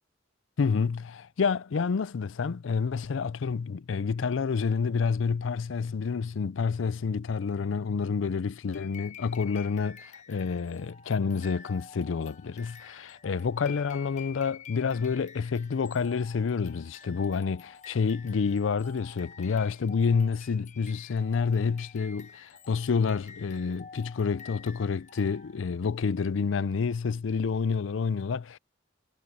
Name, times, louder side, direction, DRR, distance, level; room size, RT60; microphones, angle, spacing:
voice 1, 0.6-28.6, left 5 dB, 85° left, 0.5 m, -28 dB
sound 1, 8.7-25.8, left 6 dB, 40° left, 1.3 m, -50 dB
head